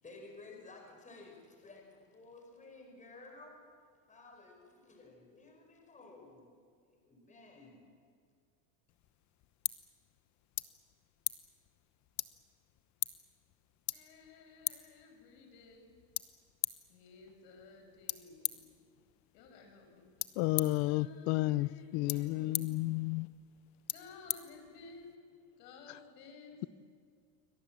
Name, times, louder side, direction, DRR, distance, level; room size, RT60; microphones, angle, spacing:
voice 1, 0.0-3.6 4.1-6.5 6.9-7.9, left 3 dB, 15° left, 5.0 m, -54 dB
sound 1, 8.9-25.2, left 15 dB, 35° left, 0.9 m, -43 dB
voice 2, 13.9-16.0 16.9-18.6 19.3-20.1 20.7-22.8 23.9-25.2 25.6-26.7, left 4 dB, 90° left, 6.5 m, -55 dB
voice 3, 20.4-23.3, left 18 dB, 65° left, 0.8 m, -32 dB
28.5 x 24.0 x 7.5 m
supercardioid pair, 145°, 47 cm